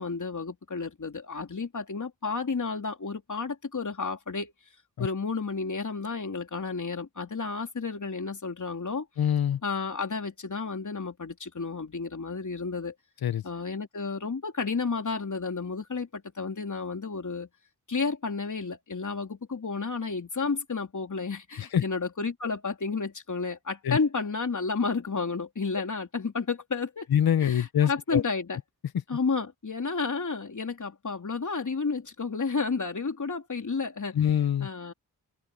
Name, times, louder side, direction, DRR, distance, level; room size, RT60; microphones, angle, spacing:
voice 1, 0.0-4.5 5.0-9.1 9.6-12.9 13.4-17.5 17.9-27.1 27.4-28.6 29.1-34.2 34.6-34.9, left 4 dB, 50° left, 3.5 m, -31 dB
voice 2, 9.2-9.6 13.2-13.4 21.6-21.8 23.8-24.0 27.1-28.2 34.1-34.7, left 9 dB, 70° left, 0.8 m, -24 dB
open air
cardioid pair, 60°, 39 cm